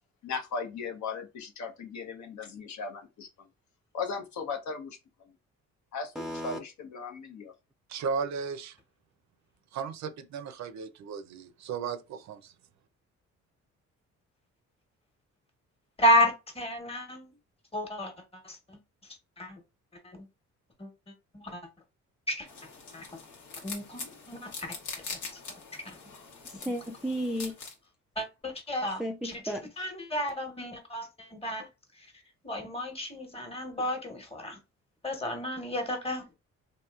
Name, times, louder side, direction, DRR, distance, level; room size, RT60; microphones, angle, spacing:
voice 1, 0.2-3.5 3.9-5.0 5.9-7.5, left 5 dB, 70° left, 0.8 m, -37 dB
voice 2, 6.2-6.6 26.4-27.6 29.0-29.9, equal, ahead, 0.3 m, -34 dB
voice 3, 7.9-8.8 9.7-12.5, right 6 dB, 65° right, 0.5 m, -35 dB
voice 4, 16.0-17.3 17.7-18.1 18.4-18.8 19.4-19.6 20.0-20.2 20.8-20.9 21.3-21.6 22.3-22.5 22.9-23.1 23.6-24.0 24.3-24.7 25.7-26.0 28.2-31.7 32.4-34.6 35.0-36.2, equal, 20° left, 1.1 m, -31 dB
sound 1, 22.5-27.7, left 4 dB, 90° left, 1.1 m, -43 dB
2.9 x 2.6 x 2.3 m
cardioid pair, 90°, 30 cm